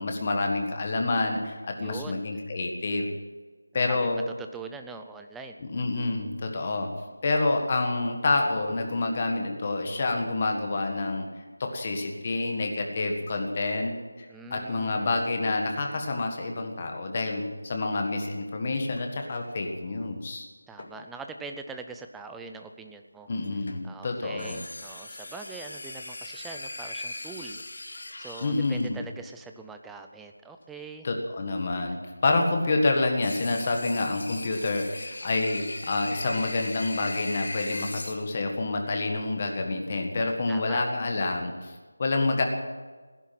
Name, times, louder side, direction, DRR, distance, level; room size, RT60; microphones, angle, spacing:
voice 1, 0.0-3.1 3.7-4.2 5.6-6.9 7.2-11.3 11.6-13.9 14.2-20.4 23.3-24.6 28.4-29.0 31.0-42.4, left 2 dB, 25° left, 3 dB, 1.7 m, -28 dB
voice 2, 1.8-2.3 3.9-5.6 14.3-15.2 20.7-23.3 23.8-27.6 27.9-31.1 31.9-32.0 40.5-40.9, right 4 dB, 5° right, 5 dB, 0.4 m, -42 dB
sound 1, 18.9-19.5 20.8-21.4 23.4-23.9 24.4-28.9 33.2-38.1, left 2 dB, 55° left, 2.4 m, -39 dB
17.0 x 11.0 x 7.7 m, 1.4 s
figure-of-eight pair, 175°, 0 cm